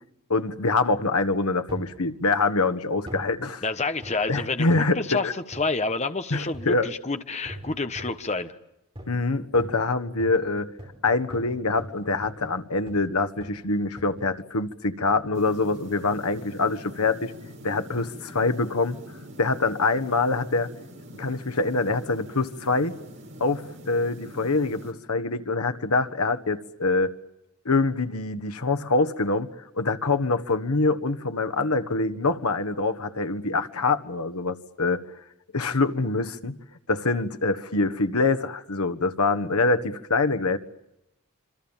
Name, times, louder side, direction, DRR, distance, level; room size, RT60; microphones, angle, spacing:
voice 1, 0.3-3.6 4.3-5.3 6.3-6.9 9.1-10.7 11.0-17.3 17.6-19.0 19.4-20.7 21.2-22.9 23.4-27.1 27.6-29.5 29.7-35.0 35.5-36.6 36.9-40.6, left 3 dB, 90° left, 10 dB, 1.5 m, -25 dB
sound 1, 1.7-2.0 3.0-3.4 4.0-5.0 5.5-5.7 6.5-6.9 7.4-8.2 8.9-9.2 9.5-13.1 13.4-13.6 14.0-14.4 15.1-15.3 16.2-16.5 17.1-17.2, right 1 dB, 25° right, 5.7 m, -41 dB
voice 2, 3.6-8.5, left 3 dB, 30° left, 9 dB, 1.2 m, -29 dB
sound 2, 15.3-24.9, equal, 55° right, 5.4 m, -44 dB
27.0 x 25.0 x 7.4 m, 0.86 s
head